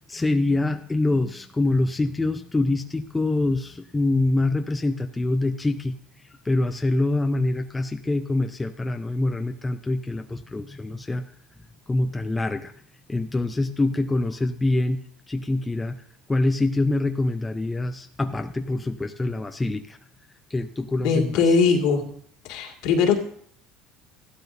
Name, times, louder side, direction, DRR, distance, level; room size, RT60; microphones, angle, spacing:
voice 1, 0.1-6.0 6.4-11.2 11.9-12.7 13.1-15.0 15.3-16.0 16.3-20.0 20.5-21.5, left 2 dB, 15° left, 7 dB, 0.6 m, -25 dB
voice 2, 21.0-22.1 22.4-23.2, left 5 dB, 75° left, 3 dB, 2.1 m, -20 dB
14.5 x 12.0 x 2.7 m, 0.62 s
supercardioid pair, 105°, 0 cm